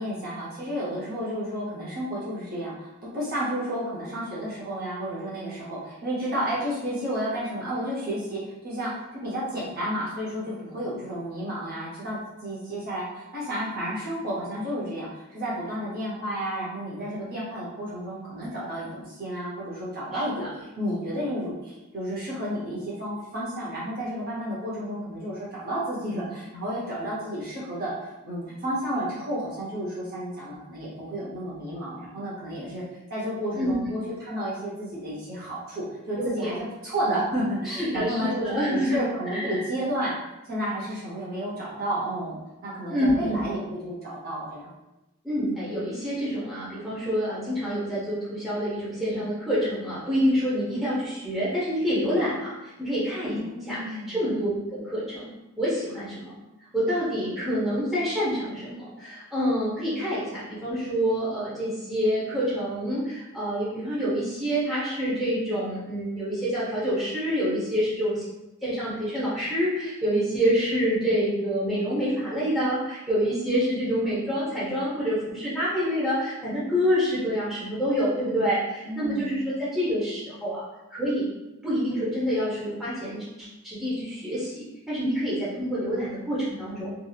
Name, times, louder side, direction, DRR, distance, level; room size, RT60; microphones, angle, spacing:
voice 1, 0.0-32.8 33.1-40.1 40.4-44.7 53.2-54.2 78.8-79.4, equal, 40° right, -7 dB, 0.7 m, -31 dB
voice 2, 36.1-36.6 37.7-39.0 39.3-39.6 42.9-43.5 45.2-56.4 56.7-68.2 68.6-81.3 81.6-86.9, equal, ahead, -10 dB, 0.8 m, -27 dB
2.8 x 2.7 x 2.3 m, 0.98 s
head